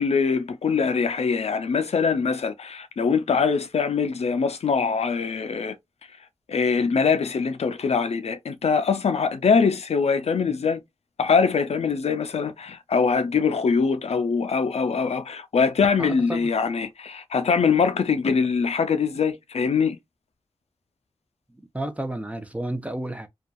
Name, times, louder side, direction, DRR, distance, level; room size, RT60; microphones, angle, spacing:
voice 1, 0.0-5.8 6.5-10.8 11.2-20.0, left 5 dB, 70° left, 0.4 m, -23 dB
voice 2, 16.0-16.5 21.7-23.3, right 1 dB, 10° right, 0.6 m, -31 dB
2.6 x 2.3 x 2.2 m
cardioid pair, 55°, 11 cm